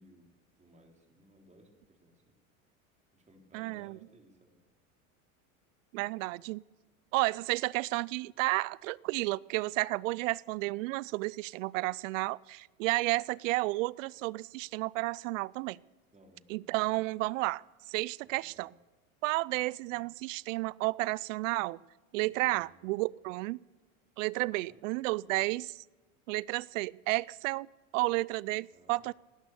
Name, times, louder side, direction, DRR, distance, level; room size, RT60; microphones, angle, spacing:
voice 1, 0.0-2.4 3.1-4.6 6.3-6.5 16.1-17.0 18.2-18.7 19.8-20.1 22.3-22.9 24.4-24.8 28.7-29.1, right 1 dB, 15° right, 3 dB, 3.5 m, -61 dB
voice 2, 3.5-4.0 5.9-6.6 7.1-15.8 16.5-18.7 19.2-21.8 22.1-23.6 24.2-25.8 26.3-27.7 27.9-29.1, right 21 dB, 65° right, 24 dB, 0.5 m, -32 dB
18.0 x 10.0 x 6.9 m, 1.2 s
hypercardioid pair, 95°, 42 cm